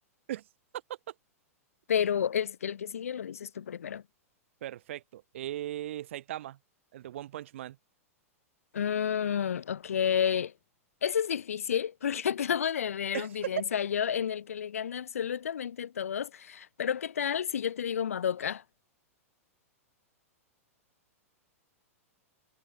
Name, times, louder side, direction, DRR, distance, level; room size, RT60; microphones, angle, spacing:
voice 1, 1.9-4.0 8.7-10.5 11.0-18.6, left 8 dB, 70° left, 0.4 m, -30 dB
voice 2, 4.6-6.6 6.9-7.8 13.1-13.5, right 13 dB, 55° right, 0.4 m, -38 dB
figure-of-eight pair, 100°, 8 cm